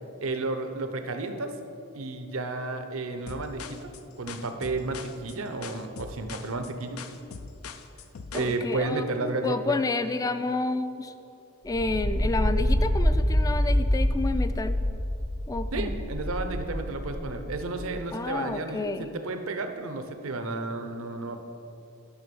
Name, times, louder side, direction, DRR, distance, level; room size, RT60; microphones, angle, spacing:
voice 1, 0.2-1.5 1.9-3.9 4.2-7.0 8.3-9.8 15.7-21.4, right 3 dB, 75° right, 7 dB, 0.7 m, -32 dB
sound 1, 3.3-8.6, left 5 dB, 90° left, 0.5 m, -42 dB
voice 2, 8.3-9.1 9.4-11.1 11.6-14.8 15.5-16.0 18.1-19.1, left 3 dB, 15° left, 10 dB, 0.3 m, -30 dB
sound 2, 11.7-17.7, equal, 60° left, 2.3 m, -26 dB
9.7 x 6.2 x 5.3 m, 2.7 s
head